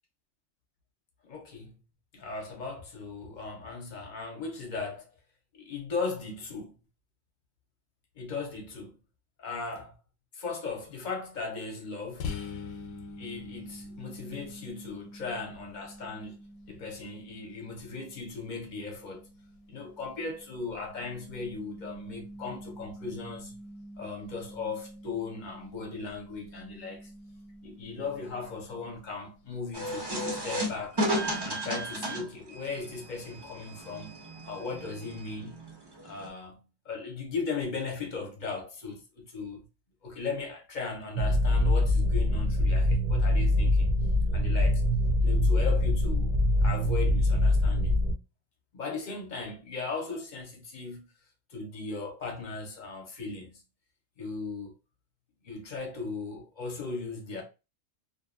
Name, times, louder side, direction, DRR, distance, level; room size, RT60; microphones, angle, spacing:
voice 1, 1.2-1.7 2.1-5.1 5.5-6.8 8.2-9.0 9.4-10.0 10.3-12.3 13.2-16.4 16.7-19.3 19.7-23.6 24.0-27.1 27.6-31.0 31.4-34.2 34.4-35.6 36.0-39.6 40.0-44.0 44.3-44.8 45.2-46.3 46.6-48.0 48.7-51.1 51.5-53.6 54.2-54.7 55.4-57.4, left 4 dB, 45° left, 0.7 m, -37 dB
sound 1, 12.2-29.7, left 2 dB, 85° left, 1.0 m, -46 dB
sound 2, 29.7-36.3, equal, 30° right, 0.4 m, -34 dB
sound 3, 41.2-48.1, left 1 dB, 65° right, 0.7 m, -24 dB
2.5 x 2.2 x 2.4 m
omnidirectional pair, 1.3 m